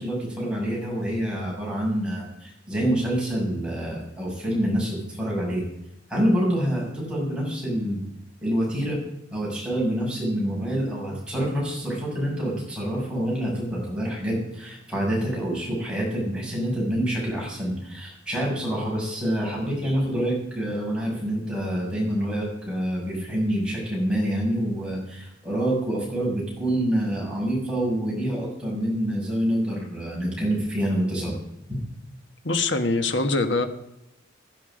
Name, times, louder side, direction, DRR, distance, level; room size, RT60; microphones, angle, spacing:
voice 1, 0.0-5.6 6.1-8.0 8.4-9.0 9.3-31.3, equal, 5° right, -4 dB, 6.6 m, -27 dB
voice 2, 32.4-33.7, left 3 dB, 65° left, 8 dB, 1.4 m, -23 dB
15.5 x 11.0 x 5.1 m, 0.86 s
head